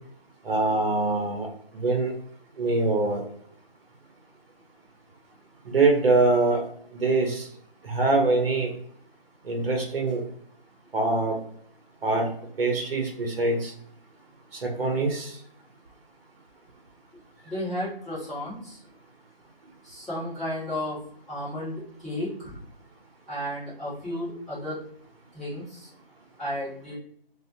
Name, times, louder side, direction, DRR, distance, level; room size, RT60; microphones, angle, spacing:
voice 1, 0.4-1.5 1.7-2.1 2.6-3.2 5.7-6.7 6.9-7.5 7.8-8.7 9.4-10.2 10.9-11.4 12.0-12.3 12.6-13.7 14.6-15.3, right 3 dB, 70° right, 2 dB, 0.7 m, -23 dB
voice 2, 17.4-18.8 19.8-21.0 21.3-22.6 23.3-24.8 25.3-25.9 26.4-27.0, left 1 dB, ahead, -15 dB, 0.4 m, -33 dB
2.6 x 2.1 x 2.5 m, 0.64 s
figure-of-eight pair, 170°, 30 cm